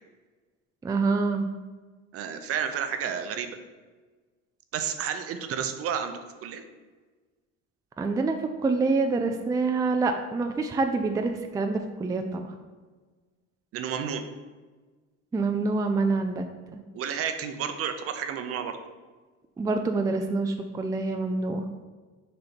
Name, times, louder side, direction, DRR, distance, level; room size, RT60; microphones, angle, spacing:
voice 1, 0.8-1.5 8.0-12.5 15.3-16.5 16.7-16.8 19.6-21.7, right 3 dB, 10° right, 5 dB, 0.4 m, -26 dB
voice 2, 2.1-3.5 4.7-6.6 13.7-14.2 16.9-18.8, right 8 dB, 50° right, 8 dB, 0.7 m, -31 dB
6.5 x 4.4 x 4.2 m, 1.4 s
cardioid pair, 120°, 30 cm